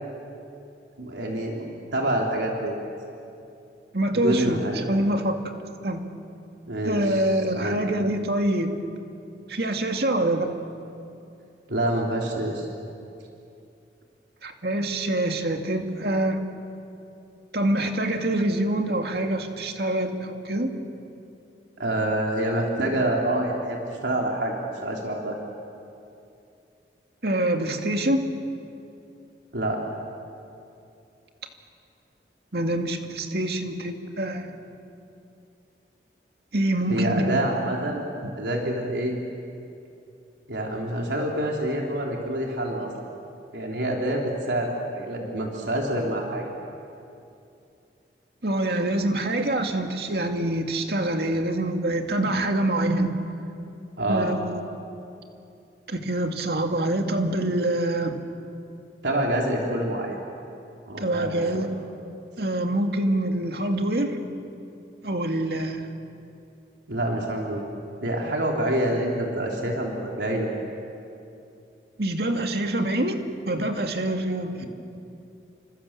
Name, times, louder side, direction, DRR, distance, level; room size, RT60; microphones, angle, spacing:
voice 1, 1.0-2.8 4.1-4.9 6.7-7.8 11.7-12.7 21.8-25.4 29.5-29.8 36.9-38.0 38.3-39.2 40.5-42.9 43.5-46.5 54.0-54.3 59.0-60.2 60.9-61.7 66.9-67.7 68.0-70.5 74.6-74.7, right 1 dB, 80° right, -1 dB, 3.6 m, -27 dB
voice 2, 3.9-4.6 4.9-5.4 5.8-6.1 6.8-8.7 9.5-10.5 14.4-16.4 17.5-20.7 27.2-28.2 32.5-34.6 36.5-37.4 38.2-38.3 48.4-53.2 54.1-54.6 55.9-58.2 61.0-61.7 62.4-64.2 65.0-65.9 72.0-74.7, right 1 dB, 60° right, 4 dB, 2.3 m, -25 dB
29.5 x 26.5 x 7.5 m, 2.7 s
head